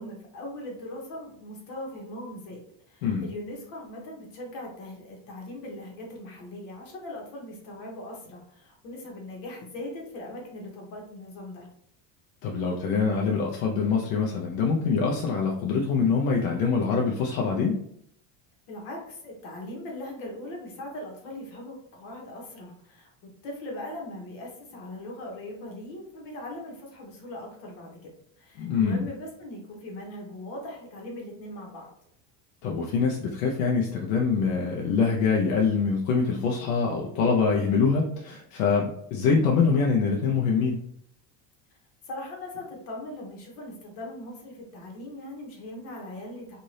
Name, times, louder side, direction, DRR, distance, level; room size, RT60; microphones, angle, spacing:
voice 1, 0.0-2.6 2.9-11.7 18.7-28.1 28.4-31.9 42.0-46.6, left 1 dB, 65° left, 0 dB, 1.2 m, -40 dB
voice 2, 12.4-17.8 28.6-29.0 32.6-40.8, left 5 dB, 90° left, -1 dB, 0.6 m, -24 dB
2.6 x 2.6 x 3.1 m, 0.70 s
cardioid pair, 165°, 41 cm